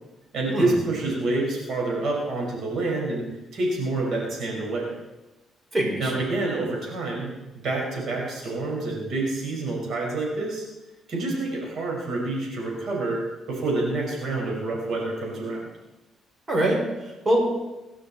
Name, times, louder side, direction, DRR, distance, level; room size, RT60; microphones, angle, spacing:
voice 1, 0.3-3.3 3.5-4.9 6.0-10.6 11.1-13.2 13.5-15.7, right 2 dB, 65° right, -2 dB, 5.3 m, -27 dB
voice 2, 5.7-6.1 16.5-17.6, right 1 dB, 35° right, -1 dB, 5.5 m, -24 dB
25.5 x 12.0 x 4.3 m, 1.0 s
cardioid pair, 90°, 0 cm